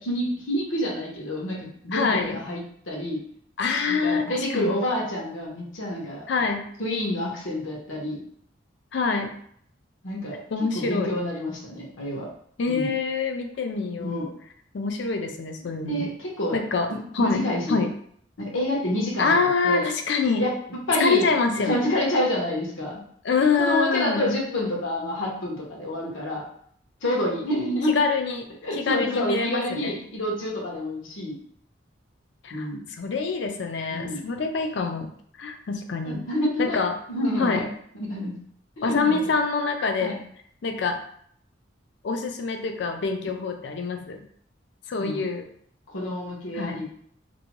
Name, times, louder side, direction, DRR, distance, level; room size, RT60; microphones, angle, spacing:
voice 1, 0.0-3.2 3.9-6.2 6.8-8.2 10.0-10.4 10.7-12.3 12.7-12.9 14.0-14.2 15.9-16.6 16.9-17.8 18.4-19.3 19.6-19.8 20.4-21.3 21.7-23.0 23.6-26.4 27.0-28.0 28.6-31.3 32.5-32.8 33.9-34.2 36.0-36.8 37.1-37.6 38.0-38.3 38.8-39.2 40.0-40.2 45.0-45.2 45.9-46.8, left 1 dB, 85° left, -3 dB, 0.9 m, -28 dB
voice 2, 1.9-2.4 3.6-4.7 6.3-6.6 8.9-9.3 10.5-11.2 12.6-14.3 14.7-16.1 16.5-16.9 17.1-17.9 19.2-20.4 21.0-21.8 23.2-24.3 27.8-28.4 28.7-30.0 32.4-32.7 33.0-35.1 35.4-36.3 36.6-37.0 37.4-37.6 38.8-40.2 40.6-41.0 42.0-44.2 44.9-45.5 46.5-46.8, left 4 dB, 60° left, 5 dB, 0.4 m, -25 dB
2.6 x 2.2 x 2.9 m, 0.63 s
head